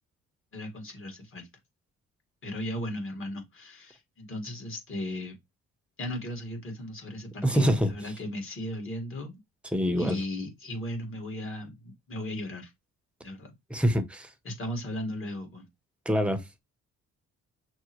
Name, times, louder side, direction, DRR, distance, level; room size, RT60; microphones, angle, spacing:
voice 1, 0.5-1.5 2.4-5.4 6.0-9.3 10.0-12.7 13.2-13.5 14.4-15.7, left 1 dB, 45° left, 1.9 m, -36 dB
voice 2, 7.4-7.9 9.7-10.2 13.7-14.3 16.1-16.6, equal, 5° right, 0.8 m, -25 dB
6.1 x 2.1 x 3.0 m
cardioid pair, 90°, 30 cm